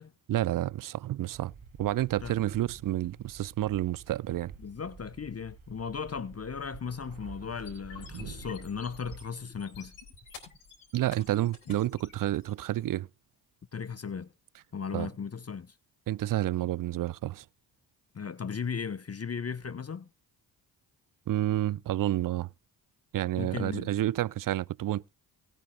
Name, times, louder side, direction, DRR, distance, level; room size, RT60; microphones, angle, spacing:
voice 1, 0.3-1.5 1.8-4.5 10.9-13.1 14.9-15.1 16.1-17.4 21.3-22.5 23.1-25.1, right 14 dB, 45° right, 0.5 m, -29 dB
sound 1, 1.3-9.2, right 5 dB, 75° right, 3.2 m, -48 dB
voice 2, 4.6-9.9 11.7-11.8 13.7-14.3 14.7-15.7 18.1-20.1 23.4-23.9, left 6 dB, 30° left, 0.9 m, -36 dB
sound 2, 7.5-12.5, left 5 dB, 85° left, 4.0 m, -50 dB
19.0 x 9.0 x 2.3 m
hypercardioid pair, 45°, 48 cm